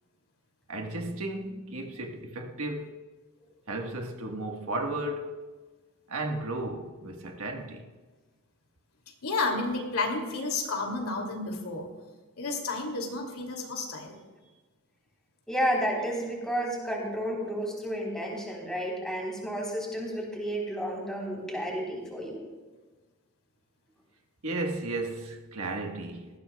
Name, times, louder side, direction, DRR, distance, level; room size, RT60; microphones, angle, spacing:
voice 1, 0.7-3.0 3.7-5.4 6.1-7.9 24.4-26.3, right 2 dB, 70° right, 1.4 m, -34 dB
voice 2, 9.2-11.9 12.4-14.2, left 3 dB, 75° left, 2.7 m, -31 dB
voice 3, 15.5-22.4, equal, 5° left, 3.7 m, -31 dB
19.0 x 15.0 x 2.3 m
head